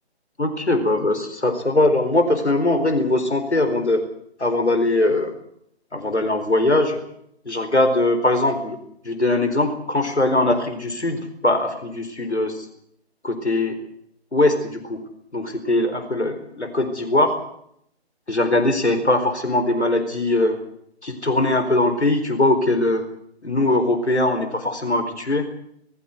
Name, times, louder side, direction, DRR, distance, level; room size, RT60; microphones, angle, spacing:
voice 1, 0.4-4.0 4.4-5.3 5.9-7.0 7.5-8.8 9.0-12.6 13.2-13.8 14.3-15.0 15.3-17.4 18.3-20.6 21.0-23.0 23.4-25.5, left 2 dB, 80° left, 7 dB, 4.5 m, -21 dB
21.0 x 15.5 x 9.6 m, 0.71 s
figure-of-eight pair, 145°, 33 cm